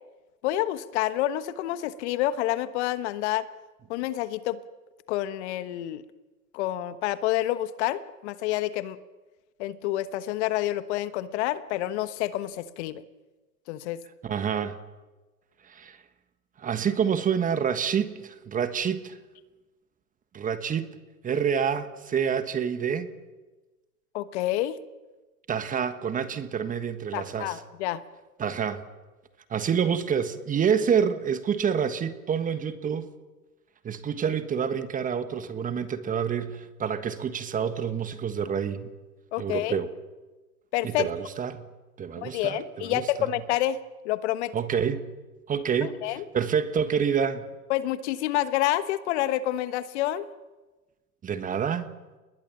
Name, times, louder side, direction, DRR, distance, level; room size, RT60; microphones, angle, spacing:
voice 1, 0.4-3.4 3.9-4.6 5.1-6.0 6.5-9.0 9.6-13.0 13.7-14.0 24.1-24.8 27.1-28.0 39.3-39.8 40.7-41.1 42.2-43.8 44.0-44.5 45.8-46.2 47.7-50.3, left 14 dB, 45° left, 13 dB, 1.3 m, -28 dB
voice 2, 14.2-14.8 15.6-16.0 16.6-19.2 20.3-20.9 21.2-23.1 25.5-27.6 28.4-28.8 29.5-33.1 33.8-38.9 39.4-39.9 40.8-41.7 42.0-43.0 44.5-45.1 45.5-47.5 51.2-51.9, right 7 dB, 15° right, 11 dB, 1.4 m, -27 dB
29.5 x 21.0 x 7.3 m, 1.2 s
hypercardioid pair, 120°, 47 cm